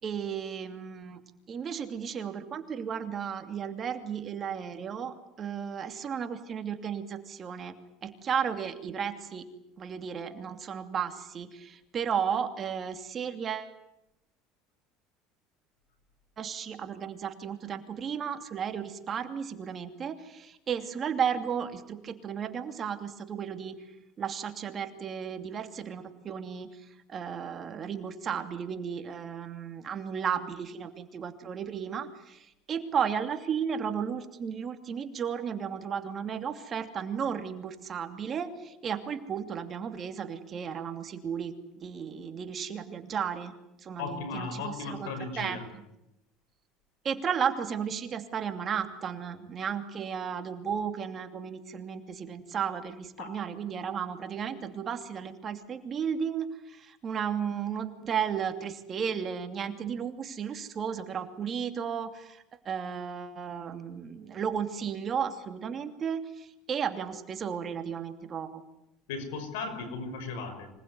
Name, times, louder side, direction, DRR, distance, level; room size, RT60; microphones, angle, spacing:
voice 1, 0.0-1.2 1.5-9.5 9.8-13.7 16.4-23.8 24.2-45.8 47.0-68.6, right 7 dB, 35° right, 7 dB, 2.7 m, -34 dB
voice 2, 44.0-45.6 53.2-53.4 69.1-70.7, left 4 dB, 85° left, 9 dB, 5.7 m, -36 dB
25.5 x 19.5 x 9.6 m, 0.88 s
supercardioid pair, 110°, 0 cm